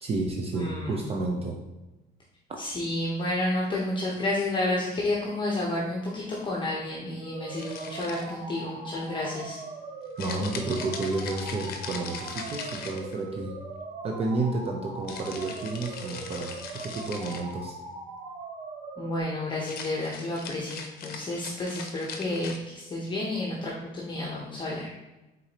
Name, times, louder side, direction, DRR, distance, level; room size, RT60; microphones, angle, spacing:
voice 1, 0.0-1.6 10.2-13.6 14.0-17.8, right 2 dB, 35° right, 1 dB, 0.6 m, -31 dB
voice 2, 0.5-1.0 2.6-9.6 19.0-24.9, left 1 dB, 30° left, -5 dB, 0.9 m, -31 dB
sound 1, 7.2-19.2, right 3 dB, 85° right, 1.0 m, -41 dB
sound 2, 7.6-8.5 10.2-13.4 15.1-17.5 19.5-22.6, left 5 dB, 65° left, 0.7 m, -40 dB
4.8 x 3.8 x 2.8 m, 1.0 s
cardioid pair, 110°, 17 cm